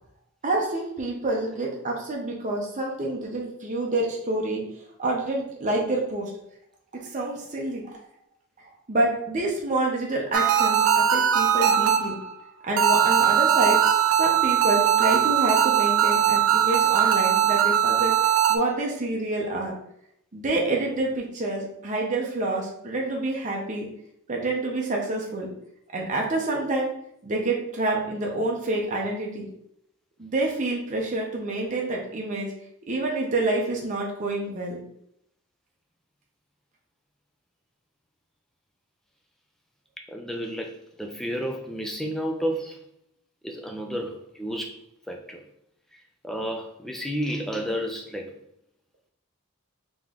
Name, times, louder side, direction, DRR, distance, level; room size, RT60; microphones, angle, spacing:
voice 1, 0.4-4.6 5.0-6.3 6.9-8.0 8.9-12.2 12.6-13.8 14.2-18.1 18.5-19.7 20.3-23.9 24.3-25.5 25.9-26.9 27.2-29.5 30.2-32.5 32.9-34.8, right 2 dB, 35° right, -1 dB, 0.7 m, -27 dB
sound 1, 10.3-12.3 12.8-18.6, right 9 dB, 75° right, 0.4 m, -20 dB
voice 2, 40.1-42.8 43.4-44.8 45.1-45.4 46.2-48.3, equal, ahead, 2 dB, 0.4 m, -31 dB
3.6 x 3.0 x 3.7 m, 0.75 s
head